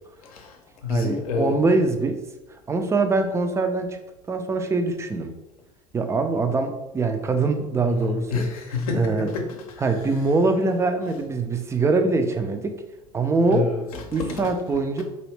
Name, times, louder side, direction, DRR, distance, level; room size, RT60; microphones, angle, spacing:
voice 1, 0.2-0.6 0.8-1.6 7.9-9.4 13.5-14.5, left 5 dB, 65° left, 4 dB, 0.7 m, -28 dB
voice 2, 0.9-2.2 2.7-4.0 4.3-5.3 5.9-8.5 8.9-9.3 9.8-12.8 13.1-13.7 14.1-15.0, right 3 dB, 15° right, 6 dB, 0.4 m, -23 dB
4.0 x 2.7 x 3.1 m, 1.0 s
figure-of-eight pair, 70°, 20 cm